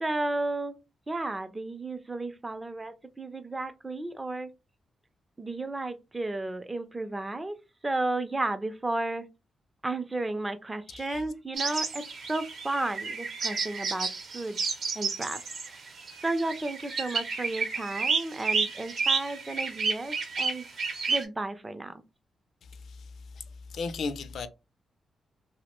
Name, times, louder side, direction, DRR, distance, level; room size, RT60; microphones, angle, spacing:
voice 1, 0.0-0.8 1.1-4.5 5.4-7.6 7.8-9.2 9.8-14.6 14.9-15.9 16.2-20.6 21.1-21.9, right 2 dB, 20° right, 0.4 m, -33 dB
sound 1, 11.6-21.2, right 4 dB, 70° right, 0.8 m, -31 dB
voice 2, 23.7-24.5, left 4 dB, 75° left, 0.4 m, -34 dB
2.8 x 2.0 x 3.0 m
cardioid pair, 85°, 0 cm